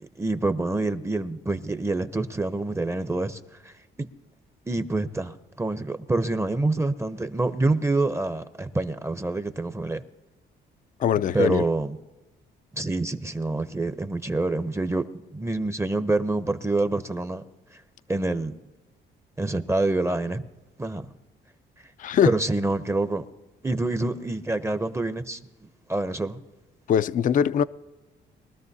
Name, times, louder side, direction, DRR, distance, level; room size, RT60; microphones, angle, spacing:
voice 1, 0.0-4.1 4.7-10.0 11.3-12.0 12.7-15.0 15.3-17.4 18.1-18.5 19.4-20.4 20.8-21.1 22.3-23.2 23.6-25.4 25.9-26.4, right 2 dB, 15° right, 0.6 m, -26 dB
voice 2, 11.0-11.6 22.0-22.3 26.9-27.6, left 9 dB, 40° left, 0.4 m, -22 dB
22.5 x 13.0 x 2.7 m
cardioid pair, 90°, 20 cm